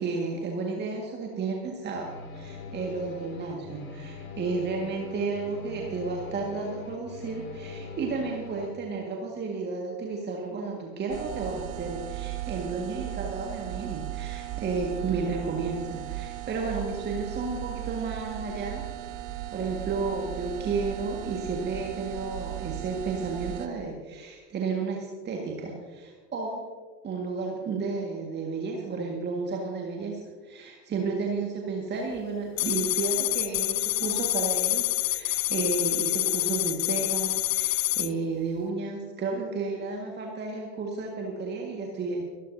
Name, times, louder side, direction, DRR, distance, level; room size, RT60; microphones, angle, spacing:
voice 1, 0.0-18.9 19.5-26.6 27.0-42.2, right 4 dB, 20° right, 0 dB, 1.8 m, -32 dB
sound 1, 1.9-8.7, left 3 dB, 60° left, 3.0 m, -42 dB
sound 2, 11.1-23.7, right 14 dB, 45° right, 1.1 m, -37 dB
sound 3, 32.6-38.1, left 17 dB, 40° left, 0.5 m, -27 dB
23.5 x 13.0 x 2.8 m, 1.5 s
figure-of-eight pair, 85°, 48 cm